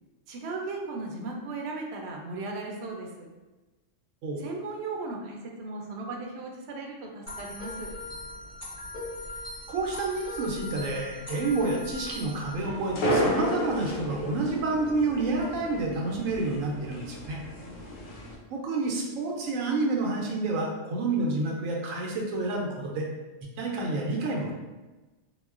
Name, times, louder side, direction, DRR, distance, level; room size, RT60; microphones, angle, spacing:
voice 1, 0.3-3.3 4.4-7.9 17.6-18.0, right 3 dB, 65° right, 0 dB, 0.7 m, -37 dB
sound 1, 7.3-12.6, left 2 dB, 15° left, 0.9 m, -39 dB
voice 2, 9.7-17.4 18.5-23.1 23.6-24.5, right 3 dB, 90° right, -1 dB, 1.0 m, -29 dB
sound 2, 12.6-18.3, equal, 85° left, 1.1 m, -32 dB
3.8 x 2.1 x 2.4 m, 1.2 s
omnidirectional pair, 1.3 m